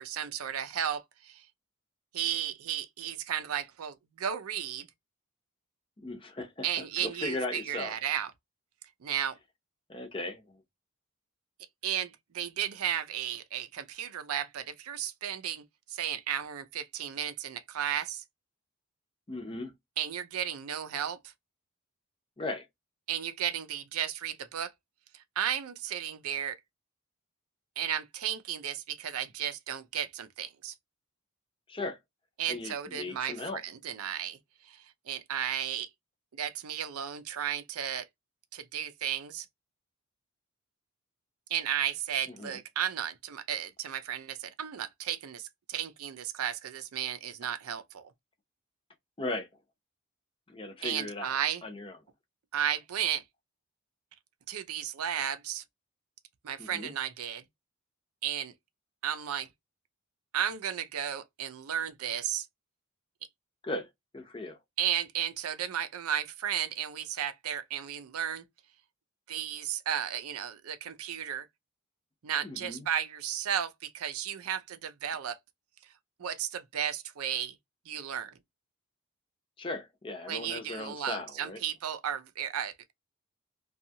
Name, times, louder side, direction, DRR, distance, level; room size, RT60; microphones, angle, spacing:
voice 1, 0.0-1.4 2.1-4.9 6.6-8.3 9.0-9.4 11.8-15.6 15.9-18.2 20.0-21.2 23.1-24.7 25.1-26.6 27.8-30.7 32.4-34.4 34.6-35.9 36.3-38.1 38.5-39.5 41.5-48.1 50.8-51.6 52.5-53.2 54.5-55.6 56.4-57.4 58.2-58.5 59.0-59.5 60.3-62.5 64.8-68.4 69.3-71.5 72.2-75.4 76.2-77.5 77.9-78.3 80.3-82.9, right 9 dB, 85° right, 0.5 m, -34 dB
voice 2, 6.0-7.9 9.9-10.6 19.3-19.7 22.4-22.7 31.7-32.0 32.5-33.6 42.3-42.6 49.2-49.5 50.5-52.0 56.6-56.9 63.6-63.9 64.1-64.6 72.4-72.9 79.6-81.6, left 2 dB, 25° left, 0.6 m, -37 dB
2.6 x 2.3 x 2.6 m
head